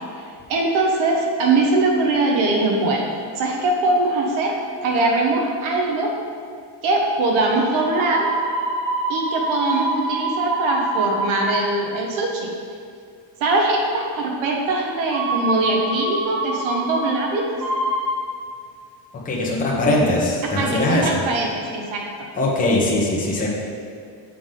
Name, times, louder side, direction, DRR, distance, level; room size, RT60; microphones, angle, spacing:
voice 1, 0.5-3.1 3.4-4.6 4.8-6.1 6.8-8.3 9.1-12.5 13.4-17.5 20.5-22.0, right 2 dB, 75° right, 0 dB, 1.1 m, -21 dB
sound 1, 7.7-11.6 15.1-17.1 17.6-18.2, right 2 dB, 45° right, 1.3 m, -25 dB
voice 2, 19.2-21.2 22.4-23.5, left 2 dB, 15° left, -4 dB, 1.0 m, -20 dB
7.0 x 6.0 x 3.8 m, 2.3 s
cardioid pair, 175°, 47 cm